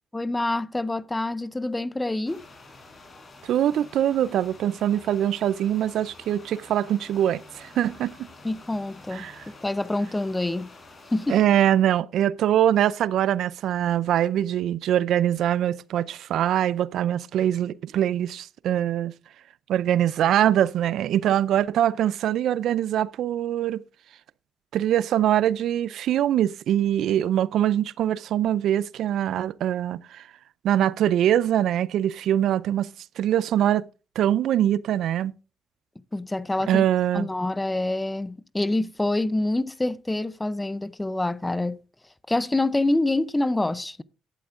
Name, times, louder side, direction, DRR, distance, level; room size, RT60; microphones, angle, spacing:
voice 1, 0.1-2.4 8.4-10.7 11.1-11.4 36.1-36.8 37.1-41.8 42.3-44.0, left 2 dB, 15° left, 0.6 m, -26 dB
sound 1, 2.3-11.4, left 3 dB, 35° left, 4.6 m, -48 dB
voice 2, 3.4-8.3 9.1-9.4 11.3-19.1 19.7-23.8 24.7-30.3 30.6-32.9 33.2-33.9 34.2-35.3 36.7-37.3, right 11 dB, 75° right, 0.4 m, -23 dB
12.0 x 8.5 x 3.6 m
cardioid pair, 90°, 0 cm